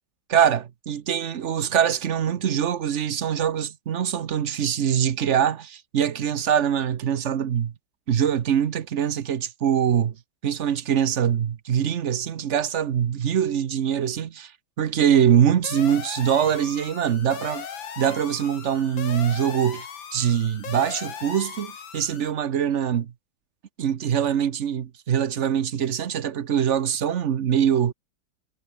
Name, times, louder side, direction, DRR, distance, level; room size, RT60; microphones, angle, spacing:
voice 1, 0.3-7.7 8.1-10.1 10.4-14.5 14.8-17.7 18.0-23.1 23.8-27.9, right 9 dB, 50° right, 0.9 m, -23 dB
sound 1, 15.6-22.3, left 7 dB, 80° left, 2.6 m, -38 dB
omnidirectional pair, 2.1 m